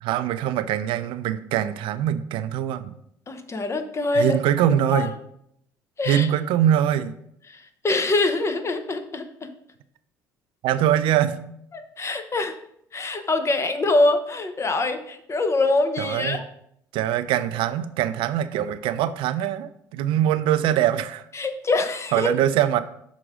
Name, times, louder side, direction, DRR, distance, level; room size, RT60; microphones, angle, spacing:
voice 1, 0.0-2.9 4.1-5.1 6.0-7.2 10.6-11.4 16.0-16.4 16.9-21.3 22.1-22.8, right 11 dB, 65° right, 12 dB, 0.4 m, -23 dB
voice 2, 3.3-4.4 4.9-5.1 6.0-6.3 7.5-9.5 11.7-12.5 12.9-16.4 21.3-22.3, left 2 dB, 30° left, 8 dB, 0.9 m, -24 dB
6.1 x 3.8 x 4.9 m, 0.73 s
hypercardioid pair, 65°, 9 cm